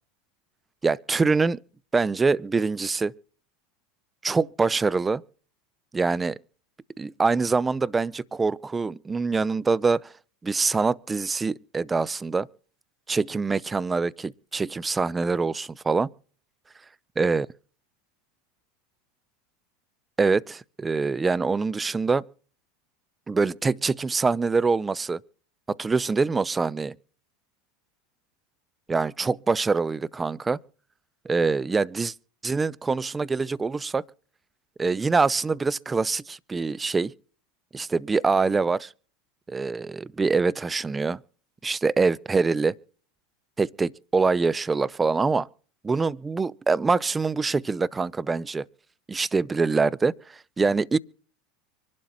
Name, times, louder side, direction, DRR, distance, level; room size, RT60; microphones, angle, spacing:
voice 1, 0.8-1.6 1.9-3.1 4.2-5.2 5.9-6.4 7.0-10.1 10.4-12.5 13.1-16.1 17.2-17.5 20.2-22.3 23.3-25.2 25.7-26.9 28.9-30.6 31.2-32.1 32.4-34.0 34.8-37.1 37.7-38.9 39.5-41.2 41.6-42.7 43.6-45.5 45.8-48.7 49.1-51.0, right 4 dB, 20° right, 0.5 m, -24 dB
25.0 x 12.0 x 3.0 m
hypercardioid pair, 90°, 0 cm